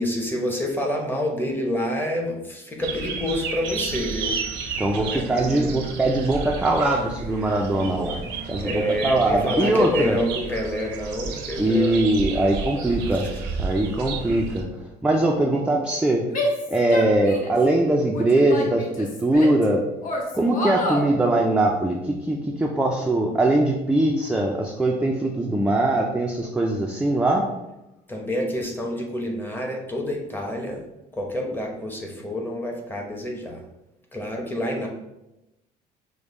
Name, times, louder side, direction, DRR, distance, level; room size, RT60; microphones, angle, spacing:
voice 1, 0.0-4.4 4.8-5.8 8.6-12.0 12.9-13.2 28.1-30.8 31.1-33.6 34.1-34.9, left 1 dB, 10° left, 0 dB, 0.8 m, -28 dB
sound 1, 2.8-14.6, right 5 dB, 90° right, 0.6 m, -32 dB
sound 2, 3.7-5.2, right 6 dB, 30° left, 1.5 m, -39 dB
voice 2, 4.8-8.2 8.5-10.2 11.6-13.2 13.6-14.7 15.0-16.2 16.7-19.8 20.3-27.4, right 1 dB, 5° right, 0 dB, 0.3 m, -21 dB
Female speech woman speaking / Yell, 16.3-17.6 18.1-19.6 20.0-21.1, left 1 dB, 50° left, 0.9 m, -29 dB
5.1 x 2.1 x 3.0 m, 0.94 s
cardioid pair, 110°, 17 cm